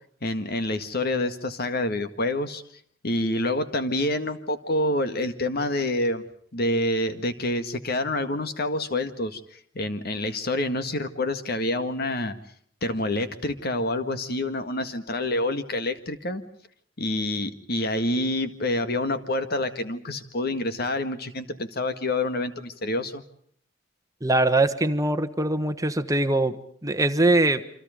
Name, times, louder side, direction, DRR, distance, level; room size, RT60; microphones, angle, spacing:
voice 1, 0.2-2.6 3.0-6.2 6.5-9.4 9.8-12.4 12.8-16.4 17.0-23.2, left 1 dB, 55° left, 9 dB, 1.9 m, -27 dB
voice 2, 24.2-27.6, right 2 dB, 20° right, 9 dB, 1.2 m, -22 dB
28.0 x 26.0 x 5.2 m, 0.62 s
head